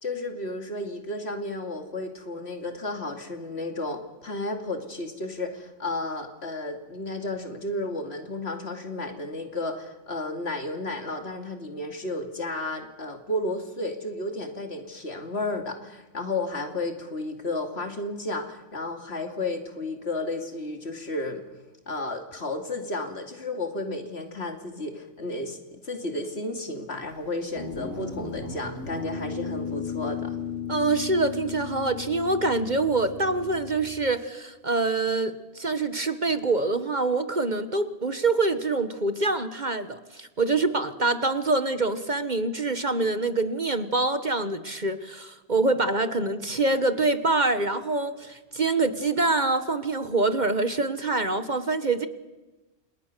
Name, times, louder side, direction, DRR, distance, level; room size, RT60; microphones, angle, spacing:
voice 1, 0.0-21.4 21.9-30.4, left 2 dB, 60° left, 5 dB, 2.9 m, -32 dB
Guitar, 27.6-34.1, left 6 dB, 85° left, 5.1 m, -35 dB
voice 2, 30.7-52.1, right 3 dB, 40° right, 11 dB, 1.4 m, -25 dB
29.0 x 27.5 x 6.8 m, 1.1 s
omnidirectional pair, 1.2 m